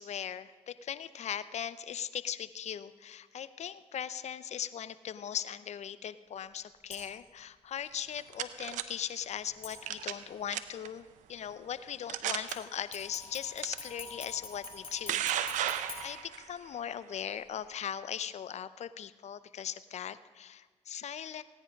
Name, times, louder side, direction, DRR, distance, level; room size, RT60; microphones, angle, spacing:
voice 1, 0.0-15.7 16.0-21.4, left 9 dB, 60° left, 15 dB, 0.7 m, -39 dB
sound 1, 6.9-7.3 9.6-10.3 12.5-16.9 17.3-17.4, left 4 dB, 45° left, 5.2 m, -47 dB
sound 2, 7.9-8.8 9.9-10.2 10.5-10.9 11.5-11.6 12.1-12.6 13.6-13.8 14.7-16.4, right 11 dB, 80° right, 0.7 m, -33 dB
17.0 x 10.0 x 5.3 m, 1.4 s
supercardioid pair, 55°, 13 cm